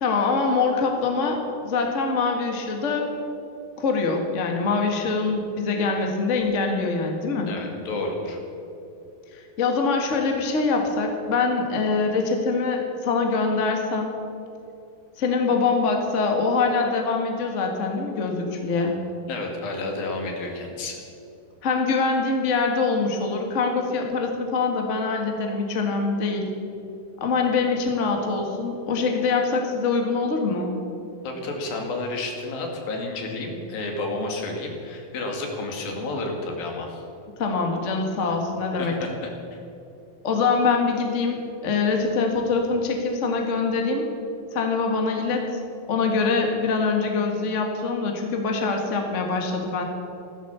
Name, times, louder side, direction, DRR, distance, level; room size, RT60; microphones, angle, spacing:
voice 1, 0.0-3.1 3.8-7.5 9.3-14.1 15.2-18.9 21.6-26.5 27.2-30.7 37.4-38.9 40.2-44.0 44.5-45.6 45.9-49.8, left 4 dB, 30° left, 2 dB, 1.4 m, -24 dB
voice 2, 7.5-8.4 19.3-21.0 31.2-37.0 38.3-38.4 38.8-39.3, left 2 dB, 80° left, 2 dB, 4.1 m, -31 dB
15.5 x 13.0 x 7.0 m, 2.8 s
omnidirectional pair, 4.1 m